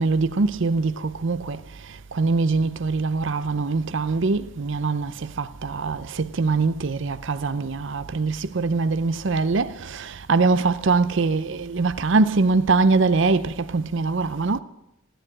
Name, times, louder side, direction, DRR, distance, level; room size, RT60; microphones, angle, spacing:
voice 1, 0.0-1.6 2.1-5.1 5.4-14.6, right 3 dB, 60° right, 0.6 m, -23 dB
17.0 x 10.0 x 7.7 m
head